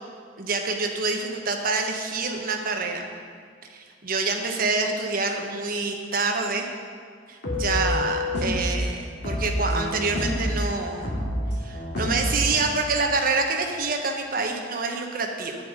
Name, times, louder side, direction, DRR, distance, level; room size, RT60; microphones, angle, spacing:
voice 1, 0.4-3.0 3.7-6.7 7.3-11.1 11.6-15.6, right 3 dB, 55° right, 3 dB, 1.1 m, -27 dB
sound 1, 7.4-8.7 9.2-10.5 11.0-12.6, left 1 dB, 80° left, 2.7 m, -27 dB
9.3 x 9.0 x 5.1 m, 2.1 s
head